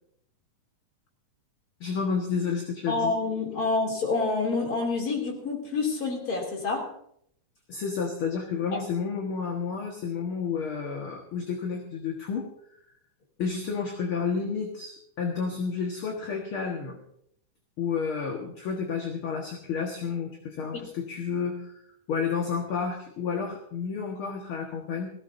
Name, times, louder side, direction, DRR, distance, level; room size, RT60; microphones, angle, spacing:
voice 1, 1.8-3.1 7.7-12.5 13.4-17.0 17.8-21.7 22.1-25.1, left 5 dB, 50° left, 1 dB, 2.1 m, -31 dB
voice 2, 2.9-6.9 8.7-8.8, left 3 dB, 30° left, 0 dB, 3.1 m, -27 dB
18.5 x 16.0 x 2.7 m, 0.70 s
omnidirectional pair, 3.7 m